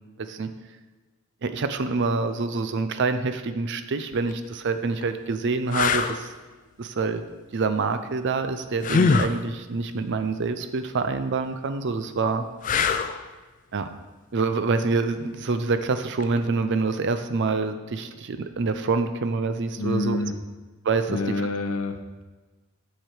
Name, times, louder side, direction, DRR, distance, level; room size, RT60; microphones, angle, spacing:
voice 1, 0.2-0.5 1.4-6.3 6.8-7.2 7.5-12.4 13.7-13.9 14.3-20.2 20.8-21.2, right 4 dB, 55° right, 9 dB, 0.5 m, -26 dB
sound 1, 4.1-4.3 5.0-5.1 5.7-6.2 8.8-9.4 12.6-13.2 16.2-16.4, left 5 dB, 35° left, 0.4 m, -22 dB
voice 2, 19.8-20.3 21.1-22.2, left 2 dB, 75° left, 7 dB, 0.8 m, -28 dB
7.8 x 6.7 x 4.5 m, 1.3 s
head